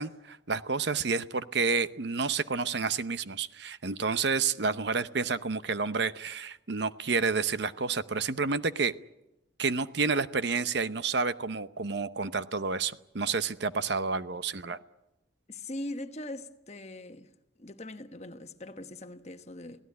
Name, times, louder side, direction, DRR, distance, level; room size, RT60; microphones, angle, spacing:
voice 1, 0.0-8.9 9.6-14.8, right 4 dB, 60° right, 0.8 m, -30 dB
voice 2, 15.5-17.3 17.6-19.8, left 1 dB, 35° left, 1.2 m, -41 dB
24.5 x 17.5 x 9.6 m
head